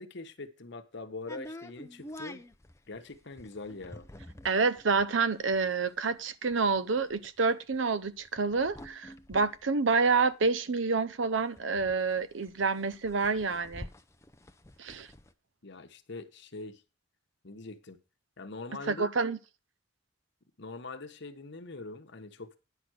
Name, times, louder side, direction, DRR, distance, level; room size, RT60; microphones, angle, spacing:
voice 1, 0.0-2.4 2.9-4.1 15.6-16.8 17.4-18.0 18.4-19.1 20.6-22.6, left 3 dB, 65° left, 1.1 m, -43 dB
sound 1, 1.3-10.8 11.1-11.2 11.4-15.3, left 1 dB, 15° left, 0.6 m, -48 dB
voice 2, 4.4-13.9 14.8-15.1 18.9-19.4, right 4 dB, 70° right, 0.7 m, -28 dB
10.0 x 6.0 x 6.3 m
head